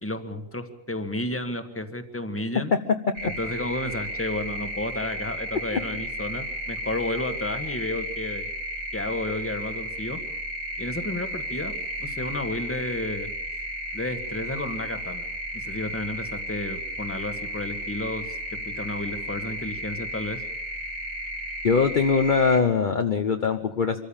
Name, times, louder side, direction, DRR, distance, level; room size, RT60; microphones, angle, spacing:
voice 1, 0.0-2.7 3.2-8.5 8.9-10.2 10.8-11.7 12.0-13.3 13.9-15.2 15.5-20.4, left 1 dB, 10° left, 8 dB, 1.5 m, -32 dB
sound 1, 3.1-22.6, equal, 80° right, 3.8 m, -34 dB
voice 2, 21.6-24.0, left 5 dB, 40° left, 6 dB, 1.0 m, -22 dB
25.0 x 14.5 x 8.8 m, 0.86 s
omnidirectional pair, 1.4 m